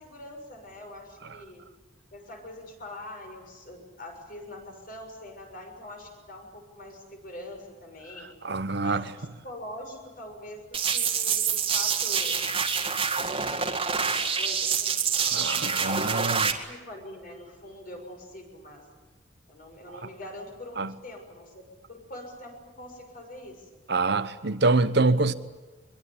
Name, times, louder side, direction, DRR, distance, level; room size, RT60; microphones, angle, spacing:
voice 1, 0.0-1.6 2.1-8.3 8.8-12.4 13.2-15.4 15.9-18.8 19.5-23.7, left 1 dB, 50° left, 6.6 m, -44 dB
voice 2, 8.4-9.0 15.2-16.5 20.8-20.9 23.9-25.3, right 3 dB, 60° right, 1.1 m, -25 dB
sound 1, 10.7-16.5, right 6 dB, 30° right, 2.0 m, -26 dB
24.0 x 22.5 x 10.0 m
head